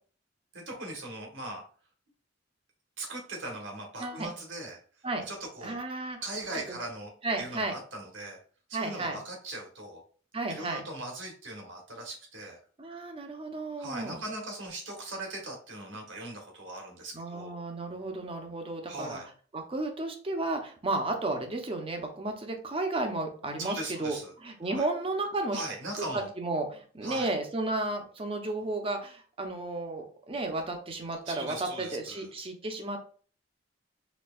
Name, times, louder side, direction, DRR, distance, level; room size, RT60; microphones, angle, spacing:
voice 1, 0.5-1.6 3.0-4.8 5.3-5.8 6.2-7.1 7.4-8.4 8.7-10.0 10.5-12.6 13.8-17.5 18.9-19.3 23.6-24.3 24.6-24.8 25.5-26.3 27.0-27.3 31.2-32.3, right 2 dB, 75° right, 1 dB, 1.3 m, -39 dB
voice 2, 5.6-6.2 6.7-6.8 7.2-7.7 8.7-9.2 10.3-10.8 12.8-14.2 17.1-19.2 19.5-25.6 26.0-33.0, right 2 dB, 30° right, 4 dB, 0.7 m, -33 dB
4.3 x 2.9 x 2.3 m, 0.43 s
head